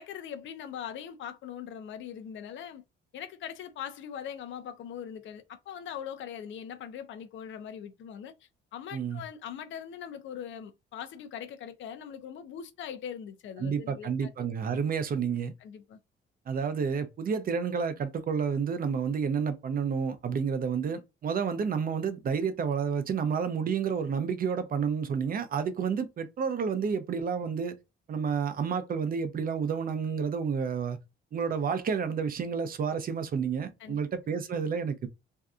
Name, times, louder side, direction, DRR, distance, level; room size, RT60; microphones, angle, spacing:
voice 1, 0.0-2.8 3.1-8.3 8.7-14.3 14.7-14.8 15.6-16.0 33.8-34.0, left 8 dB, 70° left, 0.5 m, -41 dB
voice 2, 8.9-9.2 13.6-15.5 16.5-27.8 28.1-31.0 31.3-35.1, right 6 dB, 45° right, 0.5 m, -30 dB
2.6 x 2.2 x 2.4 m
cardioid pair, 90°, 20 cm